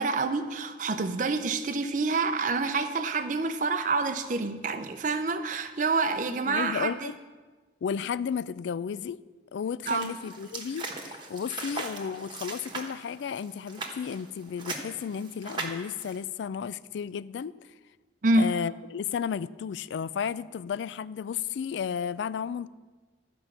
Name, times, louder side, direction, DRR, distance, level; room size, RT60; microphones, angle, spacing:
voice 1, 0.0-7.1 9.9-10.1 18.2-18.5, right 3 dB, 45° right, 0.5 m, -27 dB
voice 2, 6.3-7.2 7.8-9.2 9.5-17.5 18.3-22.7, left 7 dB, 80° left, 0.3 m, -33 dB
sound 1, 9.8-16.2, right 3 dB, 25° right, 1.2 m, -39 dB
12.5 x 5.2 x 7.2 m
head